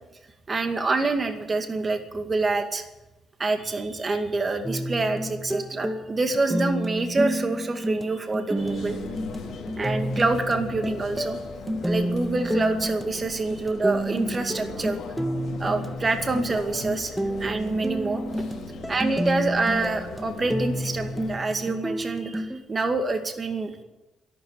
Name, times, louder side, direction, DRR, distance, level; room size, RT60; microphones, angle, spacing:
voice 1, 0.5-2.8 3.4-9.0 9.8-11.4 11.8-15.0 15.6-18.2 18.9-23.7, right 3 dB, 30° right, 6 dB, 2.3 m, -26 dB
sound 1, 4.6-22.6, equal, 5° right, 1.5 m, -30 dB
sound 2, 8.5-21.3, left 5 dB, 65° left, 4.1 m, -39 dB
13.0 x 12.0 x 9.1 m, 1.0 s
cardioid pair, 90°, 0 cm